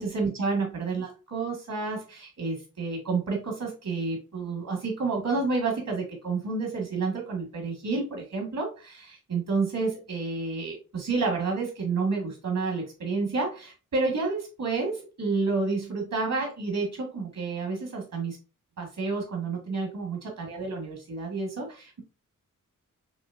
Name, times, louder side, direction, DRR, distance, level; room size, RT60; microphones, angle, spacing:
voice 1, 0.0-18.4 18.8-22.0, right 4 dB, 70° right, 1 dB, 1.7 m, -30 dB
6.1 x 3.0 x 2.5 m, 0.32 s
wide cardioid pair, 75°, 33 cm